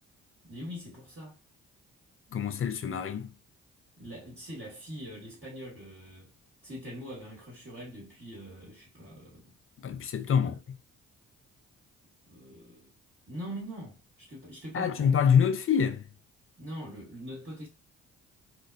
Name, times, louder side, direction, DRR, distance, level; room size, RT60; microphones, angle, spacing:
voice 1, 0.4-1.4 4.0-6.3 6.6-9.4 10.2-10.6 12.3-12.9 13.3-15.3 16.6-17.7, equal, 30° right, 1.5 m, -43 dB
voice 2, 2.3-3.3 9.8-10.8 14.7-16.0, left 7 dB, 40° left, 0.5 m, -26 dB
2.4 x 2.2 x 2.5 m
hypercardioid pair, 45°, 36 cm